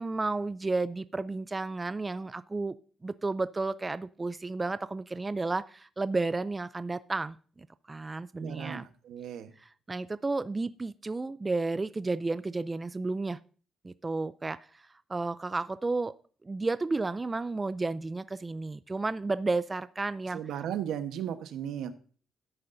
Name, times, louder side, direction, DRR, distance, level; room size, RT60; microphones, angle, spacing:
voice 1, 0.0-2.8 3.0-8.8 9.9-13.4 13.8-14.8 15.1-16.1 16.4-20.4, right 3 dB, 20° right, 15 dB, 0.4 m, -32 dB
voice 2, 8.4-9.5 20.3-22.0, right 9 dB, 80° right, 9 dB, 1.1 m, -36 dB
13.0 x 9.7 x 2.6 m, 0.42 s
cardioid pair, 90°, 0 cm